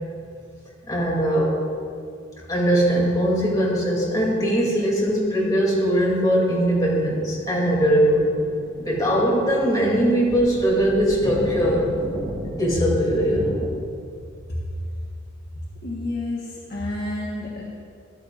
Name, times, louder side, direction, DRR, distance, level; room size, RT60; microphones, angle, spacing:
voice 1, 0.9-1.6 2.5-8.3 8.8-11.8 12.6-13.6, equal, 20° left, -5 dB, 3.0 m, -20 dB
sound 1, 5.0-5.1 7.0-13.8, equal, 40° right, 1.7 m, -35 dB
voice 2, 15.8-17.6, left 2 dB, 50° left, -5 dB, 1.4 m, -30 dB
14.5 x 12.5 x 2.6 m, 2.4 s
head